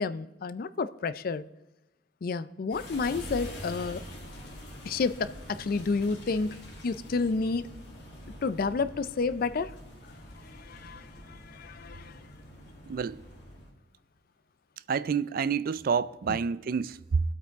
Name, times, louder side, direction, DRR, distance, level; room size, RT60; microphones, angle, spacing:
voice 1, 0.0-1.4 2.2-4.0 4.8-7.7 8.4-9.7 10.4-12.2, left 4 dB, 50° left, 0.4 m, -30 dB
sound 1, 2.7-13.7, left 1 dB, 70° left, 2.9 m, -45 dB
voice 2, 12.9-13.2 14.9-17.2, right 6 dB, 55° right, 0.4 m, -28 dB
21.5 x 8.2 x 3.5 m
head